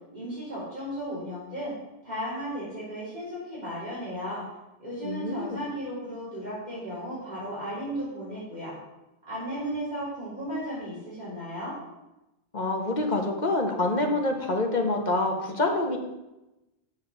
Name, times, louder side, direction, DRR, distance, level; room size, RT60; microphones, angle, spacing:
voice 1, 0.1-1.7 2.0-4.4 4.8-8.7 9.3-11.8, equal, 45° right, -10 dB, 3.9 m, -35 dB
voice 2, 5.0-5.6 12.5-16.0, left 2 dB, 45° left, 2 dB, 1.5 m, -26 dB
7.0 x 6.4 x 7.3 m, 0.96 s
omnidirectional pair, 1.0 m